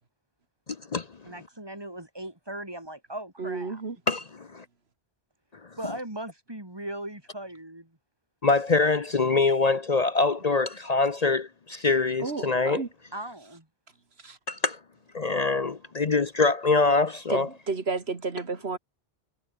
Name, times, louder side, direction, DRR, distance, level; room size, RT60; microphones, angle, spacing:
voice 1, 1.2-3.8 5.8-8.0 13.1-13.7, right 1 dB, 25° right, 3.9 m, -38 dB
voice 2, 3.4-4.0 12.2-12.9 14.2-14.4 17.3-18.8, right 4 dB, 90° right, 2.4 m, -32 dB
voice 3, 8.4-12.8 14.5-14.8 15.1-17.5, left 3 dB, 45° left, 0.9 m, -24 dB
omnidirectional pair, 1.0 m